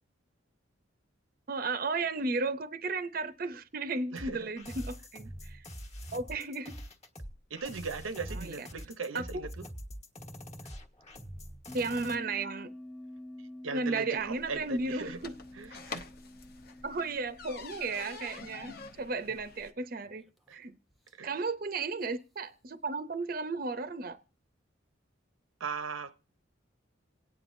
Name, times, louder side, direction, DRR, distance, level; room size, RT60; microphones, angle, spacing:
voice 1, 1.5-5.7 6.1-6.8 8.3-8.7 9.1-9.5 11.7-12.7 13.7-15.3 16.8-20.3 20.5-20.8 21.2-24.2, right 3 dB, 45° right, 0.6 m, -34 dB
voice 2, 4.1-4.5 7.5-9.7 13.4-15.2 15.5-16.1 20.5-20.6 21.1-21.3 25.6-26.2, right 4 dB, 85° right, 0.7 m, -39 dB
sound 1, 4.2-12.1, equal, 35° left, 1.3 m, -44 dB
sound 2, 11.7-18.9 19.2-19.3 20.1-20.5 20.9-21.1 22.0-22.1, left 1 dB, ahead, 0.6 m, -49 dB
sound 3, 14.2-19.7, left 4 dB, 50° left, 0.8 m, -47 dB
27.0 x 9.2 x 2.6 m
head